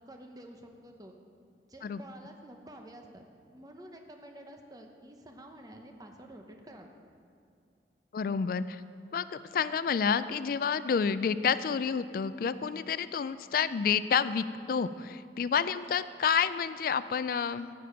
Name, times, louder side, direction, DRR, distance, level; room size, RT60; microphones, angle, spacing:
voice 1, 0.1-1.2 1.6-3.2 3.5-6.9, right 1 dB, 20° right, 3 dB, 0.8 m, -49 dB
voice 2, 8.1-8.8 9.1-17.7, left 6 dB, 55° left, 14 dB, 0.3 m, -29 dB
11.0 x 9.2 x 5.1 m, 2.5 s
head